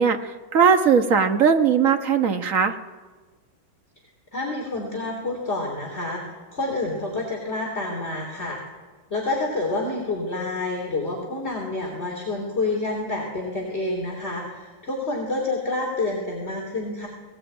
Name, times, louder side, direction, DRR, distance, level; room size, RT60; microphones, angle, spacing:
voice 1, 0.0-2.7, right 6 dB, 45° right, 6 dB, 1.5 m, -19 dB
voice 2, 4.3-8.6 9.1-17.1, left 2 dB, 30° left, -1 dB, 3.7 m, -28 dB
19.5 x 19.0 x 8.9 m, 1.3 s
omnidirectional pair, 2.2 m